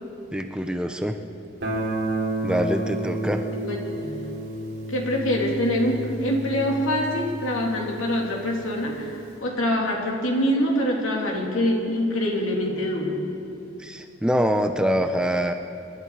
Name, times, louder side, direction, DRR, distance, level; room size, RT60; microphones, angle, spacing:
voice 1, 0.3-1.2 2.4-3.5 13.8-15.5, equal, 5° right, 6 dB, 0.5 m, -24 dB
Guitar, 1.6-8.3, right 1 dB, 50° right, 3.5 m, -31 dB
voice 2, 3.5-4.2 4.9-13.2, equal, 85° left, -1 dB, 2.7 m, -25 dB
27.0 x 11.5 x 4.8 m, 2.8 s
head